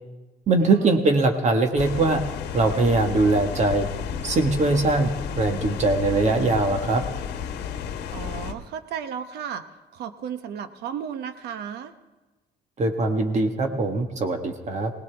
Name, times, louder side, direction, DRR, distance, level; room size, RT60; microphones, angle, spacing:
voice 1, 0.5-2.2 2.5-3.9 4.2-5.1 5.4-7.0 12.8-14.9, right 2 dB, 45° right, 5 dB, 1.5 m, -21 dB
sound 1, 1.8-8.5, left 8 dB, 80° left, 1.1 m, -32 dB
voice 2, 8.1-9.6 9.9-11.9, right 8 dB, 75° right, 10 dB, 1.0 m, -34 dB
20.5 x 18.0 x 3.5 m, 1.2 s
cardioid pair, 110°, 17 cm